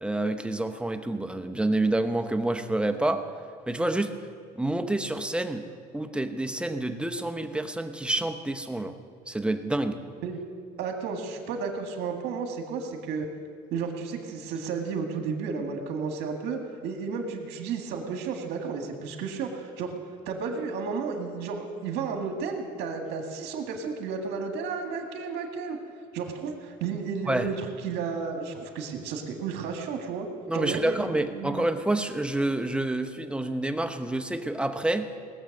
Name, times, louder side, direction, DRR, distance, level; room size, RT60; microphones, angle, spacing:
voice 1, 0.0-3.3 3.7-4.2 4.5-5.6 5.9-9.0 9.3-10.0 27.3-27.5 30.5-35.1, right 2 dB, 5° right, 6 dB, 0.8 m, -28 dB
voice 2, 10.8-13.3 13.7-19.9 20.3-25.8 26.1-30.3 30.5-31.7, right 5 dB, 85° right, 3 dB, 1.8 m, -32 dB
19.0 x 7.3 x 6.5 m, 2.1 s
cardioid pair, 110°, 17 cm